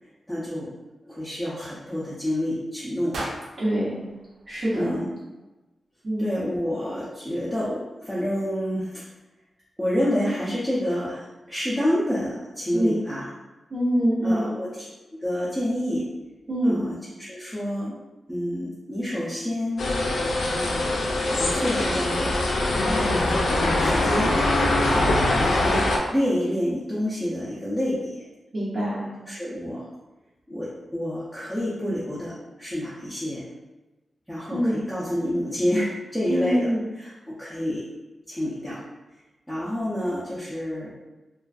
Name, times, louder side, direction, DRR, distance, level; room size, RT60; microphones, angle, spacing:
voice 1, 0.3-0.7 1.1-3.2 4.7-5.1 6.2-9.1 9.8-13.3 14.2-16.1 16.6-18.0 18.3-19.9 20.5-21.0 21.4-22.4 22.7-24.4 24.9-28.2 29.3-29.9 30.5-33.4 34.3-37.9 38.3-38.8 39.5-40.9, equal, ahead, -10 dB, 0.5 m, -28 dB
sound 1, 3.1-5.3, right 1 dB, 85° right, 0.4 m, -38 dB
voice 2, 3.6-4.0 4.5-5.0 6.0-6.3 12.7-13.0 13.7-14.5 16.5-16.9 28.5-29.1 34.5-34.8 36.3-36.8, equal, 45° right, -9 dB, 0.7 m, -24 dB
sound 2, 19.8-26.0, left 2 dB, 75° left, 0.3 m, -23 dB
2.4 x 2.2 x 2.4 m, 1.1 s
wide cardioid pair, 175°, 0 cm